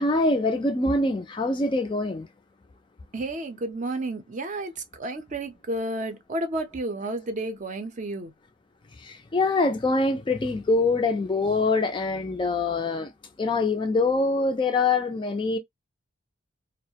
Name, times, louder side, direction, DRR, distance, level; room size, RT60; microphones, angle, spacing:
voice 1, 0.0-2.3 9.0-13.1 13.4-15.6, left 3 dB, 25° left, 0.3 m, -24 dB
voice 2, 3.1-8.3, right 2 dB, 35° right, 0.5 m, -31 dB
2.3 x 2.0 x 2.7 m
head